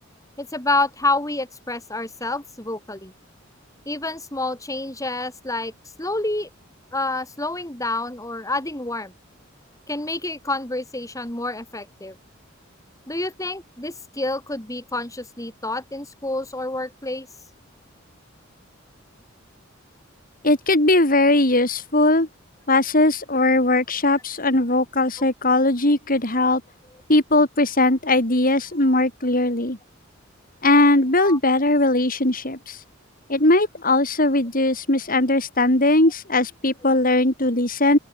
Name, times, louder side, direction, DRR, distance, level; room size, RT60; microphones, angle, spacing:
voice 1, 0.4-3.1 3.9-5.7 6.0-6.5 6.9-9.1 9.9-12.1 13.1-17.3 31.2-31.4, left 2 dB, 15° left, 4.6 m, -28 dB
voice 2, 20.4-22.3 22.7-26.6 27.1-29.8 30.6-32.8 33.3-38.0, left 2 dB, 45° left, 5.4 m, -19 dB
open air
head